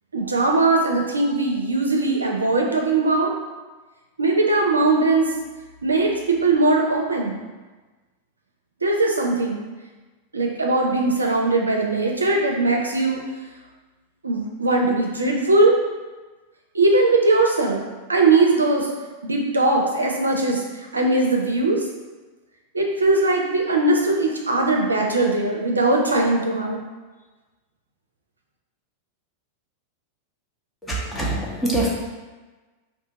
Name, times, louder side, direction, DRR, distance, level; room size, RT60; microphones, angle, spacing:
voice 1, 0.1-3.3 4.2-5.3 5.8-7.4 8.8-9.6 10.3-13.2 14.2-15.8 16.7-17.8 18.1-18.9 19.2-20.6 20.9-21.9 22.7-26.8, right 2 dB, 80° right, 0 dB, 0.5 m, -20 dB
voice 2, 30.8-31.9, right 2 dB, 10° left, -6 dB, 0.9 m, -24 dB
2.7 x 2.6 x 3.6 m, 1.2 s
figure-of-eight pair, 90°, 0 cm